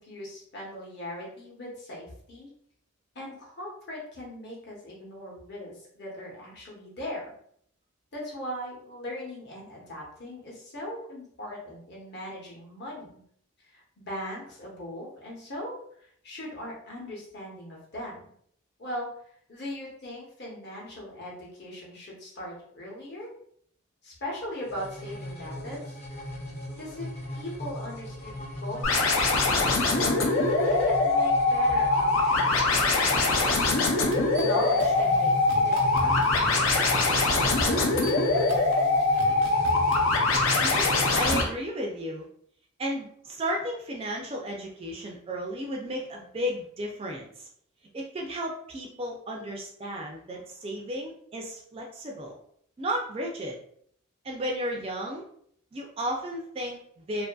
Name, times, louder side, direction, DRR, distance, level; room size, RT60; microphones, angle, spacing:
voice 1, 0.0-2.5 3.1-7.3 8.1-13.2 13.6-18.3 18.8-19.1 19.5-23.3 24.0-26.0 26.8-27.1 27.3-33.7 34.4-38.5, left 1 dB, 50° left, -4 dB, 0.9 m, -39 dB
sound 1, 24.6-41.3, left 1 dB, 30° left, 0.6 m, -38 dB
sound 2, 28.8-41.4, left 3 dB, 70° left, 0.5 m, -23 dB
sound 3, 34.1-41.5, right 1 dB, 85° right, 0.5 m, -39 dB
voice 2, 40.5-42.3 42.8-47.5 47.9-52.4 52.8-53.6 54.2-55.2 55.7-57.3, equal, 25° right, 0 dB, 0.3 m, -34 dB
2.5 x 2.5 x 2.2 m, 0.65 s
head